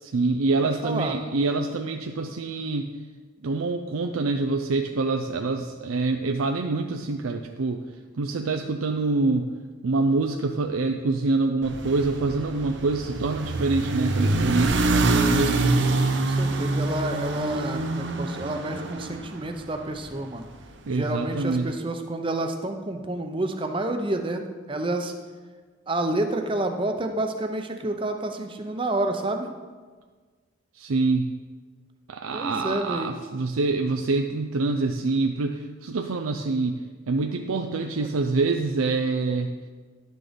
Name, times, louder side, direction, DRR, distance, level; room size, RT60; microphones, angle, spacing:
voice 1, 0.0-2.9 3.4-7.8 8.2-9.5 9.8-15.8 18.4-18.5 20.9-21.7 30.8-31.3 32.1-36.8 37.1-39.5, right 3 dB, 90° right, 4 dB, 0.5 m, -26 dB
voice 2, 0.6-1.1 16.2-20.5 20.9-25.1 25.9-29.5 32.3-33.1 38.0-38.1, right 1 dB, 25° right, 5 dB, 0.7 m, -29 dB
sound 1, 11.6-20.0, right 2 dB, 60° right, 0.8 m, -25 dB
11.0 x 6.3 x 5.1 m, 1.5 s
head